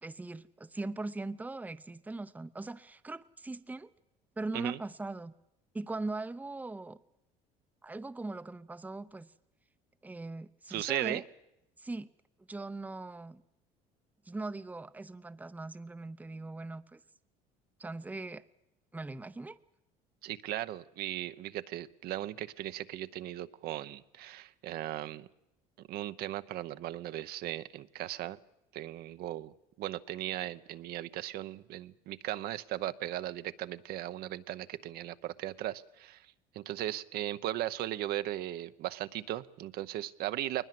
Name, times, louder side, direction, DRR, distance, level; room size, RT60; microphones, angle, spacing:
voice 1, 0.0-3.9 4.4-5.3 5.7-7.0 7.8-9.3 10.0-11.2 11.8-12.1 12.5-13.4 14.3-17.0 17.8-18.4 18.9-19.6, right 2 dB, 10° right, 0.7 m, -40 dB
voice 2, 10.7-11.2 20.2-25.3 25.9-28.4 28.7-29.5 29.8-36.3 36.5-40.7, right 14 dB, 65° right, 0.8 m, -37 dB
21.0 x 20.0 x 7.7 m
supercardioid pair, 90°, 17 cm